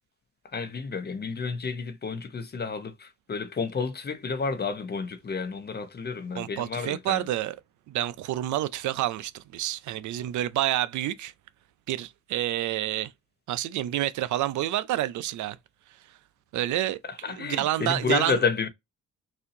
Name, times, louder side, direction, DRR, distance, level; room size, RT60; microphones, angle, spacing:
voice 1, 0.5-7.3 17.1-18.7, left 5 dB, 35° left, 0.8 m, -30 dB
voice 2, 6.4-7.6 7.9-11.3 11.9-13.1 13.5-15.6 16.5-17.0 17.3-18.4, right 13 dB, 75° right, 0.5 m, -28 dB
4.2 x 2.7 x 2.6 m
cardioid pair, 90°, 30 cm